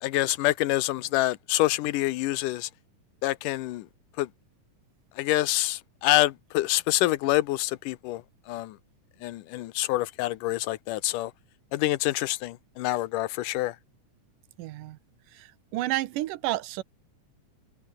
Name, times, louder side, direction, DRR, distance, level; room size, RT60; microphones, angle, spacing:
voice 1, 0.0-2.7 3.2-3.9 4.2-4.3 5.2-8.8 9.2-11.3 11.7-13.8, left 16 dB, 85° left, 2.4 m, -26 dB
voice 2, 14.6-15.0 15.3-16.8, right 16 dB, 90° right, 2.5 m, -31 dB
omnidirectional pair, 3.7 m